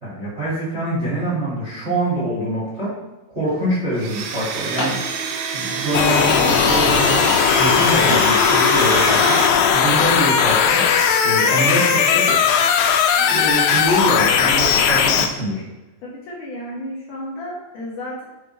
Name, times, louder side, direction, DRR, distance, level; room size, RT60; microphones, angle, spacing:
voice 1, 0.0-2.9 3.3-5.0 5.5-7.3 7.6-9.4 9.7-10.8 11.2-12.3 13.0-15.6, right 1 dB, 25° right, -8 dB, 1.5 m, -24 dB
sound 1, 3.5-3.7 4.8-5.0 5.5-7.0 7.3-7.8 8.1-8.3 8.7-10.2 12.3-12.5 12.9-13.5, left 1 dB, 45° left, 1.4 m, -33 dB
Domestic sounds home sounds, 4.0-9.5, right 6 dB, 75° right, 2.3 m, -26 dB
sound 2, 5.9-15.3, left 7 dB, 90° left, 2.8 m, -17 dB
voice 2, 16.0-18.2, left 1 dB, 60° left, -5 dB, 2.5 m, -32 dB
7.1 x 4.1 x 4.5 m, 1.1 s
omnidirectional pair, 4.8 m